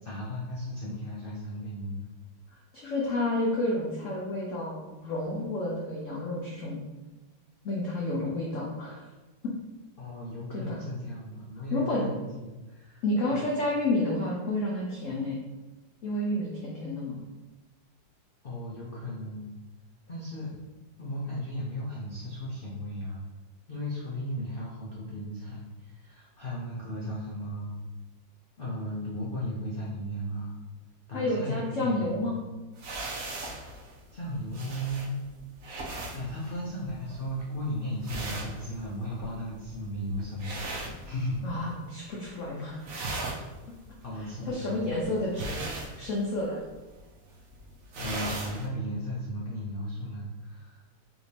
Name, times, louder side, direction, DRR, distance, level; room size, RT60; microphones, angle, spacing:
voice 1, 0.0-2.1 10.0-13.5 18.4-19.6 20.1-20.6 21.0-23.2 23.7-27.8 28.6-30.6 31.1-32.2 34.1-35.2 36.1-41.5 44.0-45.2 48.0-51.0, equal, 75° left, -6 dB, 0.5 m, -36 dB
voice 2, 2.7-6.8 7.6-9.0 9.4-9.5 10.5-10.8 11.7-12.1 13.0-15.4 16.0-17.2 31.1-32.4 41.4-42.8 44.5-45.6 46.0-46.6, left 1 dB, 60° left, -4 dB, 0.8 m, -30 dB
sound 1, 32.8-41.7 42.0-42.4 42.7-48.7, right 2 dB, 60° right, 0.9 m, -39 dB
5.0 x 2.7 x 3.2 m, 1.2 s
omnidirectional pair, 2.0 m